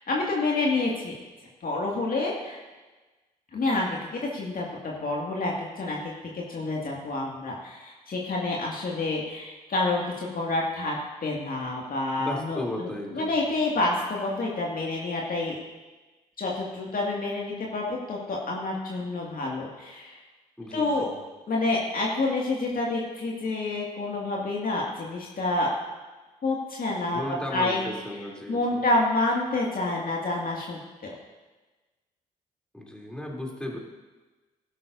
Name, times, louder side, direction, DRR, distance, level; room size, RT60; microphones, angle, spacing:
voice 1, 0.1-1.2 1.6-2.6 3.5-15.6 16.4-20.2 20.7-21.1 21.5-25.7 26.4-27.2 27.5-27.8 28.5-31.1, left 2 dB, 45° left, -2 dB, 2.2 m, -28 dB
voice 2, 12.2-13.4 20.6-21.2 27.1-28.8 32.7-33.8, left 1 dB, 5° left, -2 dB, 3.2 m, -35 dB
19.0 x 12.0 x 2.7 m, 1.2 s
figure-of-eight pair, 40°, 20 cm